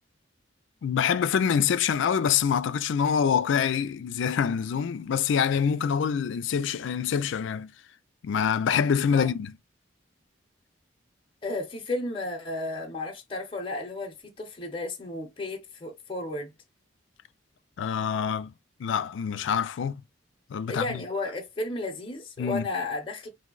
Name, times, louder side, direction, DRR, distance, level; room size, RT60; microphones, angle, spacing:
voice 1, 0.8-7.7 8.2-9.5 17.8-18.5 18.8-20.0 20.5-21.0 22.4-22.6, left 7 dB, 70° left, 0.3 m, -25 dB
voice 2, 11.4-16.5 20.7-23.3, left 2 dB, 25° left, 0.7 m, -33 dB
2.7 x 2.1 x 3.7 m
head